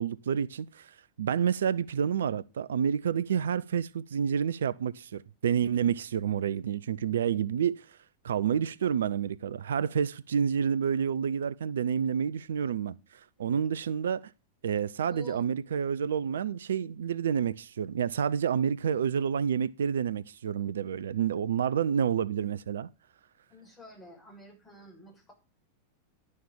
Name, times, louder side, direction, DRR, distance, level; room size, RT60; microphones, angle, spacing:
voice 1, 0.0-8.0 8.2-14.3 14.6-22.9, right 8 dB, 65° right, 0.5 m, -29 dB
voice 2, 15.0-15.4 23.5-25.3, equal, 15° left, 6.7 m, -49 dB
11.0 x 6.5 x 7.1 m
figure-of-eight pair, 90°, 0 cm